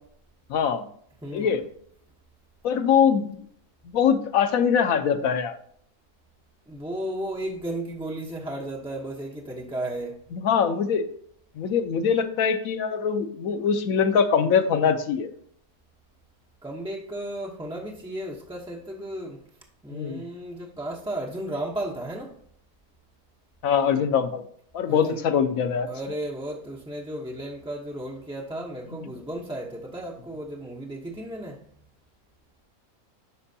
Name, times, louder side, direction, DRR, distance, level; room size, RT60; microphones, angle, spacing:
voice 1, 0.5-0.9 1.3-1.6 2.6-3.4 3.9-5.6 10.3-11.1 11.6-15.3 19.9-20.2 23.6-24.4 24.7-25.9, left 7 dB, 65° left, 1.1 m, -23 dB
voice 2, 1.2-1.6 6.7-10.2 16.6-19.4 19.8-22.4 24.9-25.2 25.9-31.6, right 1 dB, 5° right, 0.4 m, -34 dB
11.0 x 4.4 x 2.7 m
omnidirectional pair, 1.6 m